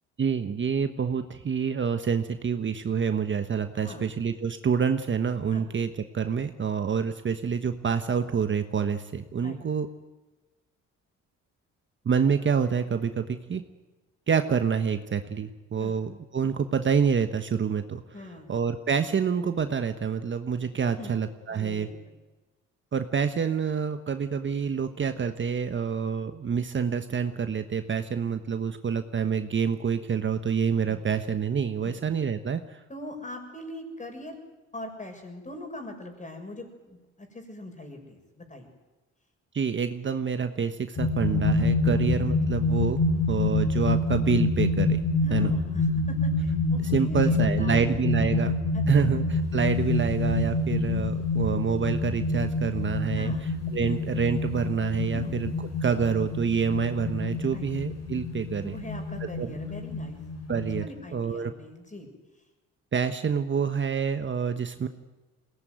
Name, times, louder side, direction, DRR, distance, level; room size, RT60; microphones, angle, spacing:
voice 1, 0.2-9.9 12.0-13.6 14.3-18.0 18.5-21.9 22.9-32.8 39.5-43.0 43.3-45.0 45.3-45.5 46.8-48.5 48.9-55.5 55.8-58.7 59.4-59.5 60.5-60.8 61.1-61.5 62.9-64.9, right 6 dB, 40° right, 9 dB, 1.3 m, -27 dB
voice 2, 3.7-4.1 5.5-5.7 9.4-9.6 15.8-15.9 18.1-18.6 20.9-21.2 21.5-22.2 30.9-31.1 31.8-32.0 32.9-34.3 34.7-38.7 41.9-42.1 45.2-48.4 48.7-49.1 53.1-53.5 53.8-53.9 55.1-55.4 57.4-57.7 58.6-60.2 60.8-62.1, left 1 dB, 25° left, 4 dB, 6.2 m, -42 dB
sound 1, 41.0-60.8, left 3 dB, 55° left, 4.4 m, -27 dB
21.5 x 18.5 x 9.4 m, 1.2 s
cardioid pair, 90°, 30 cm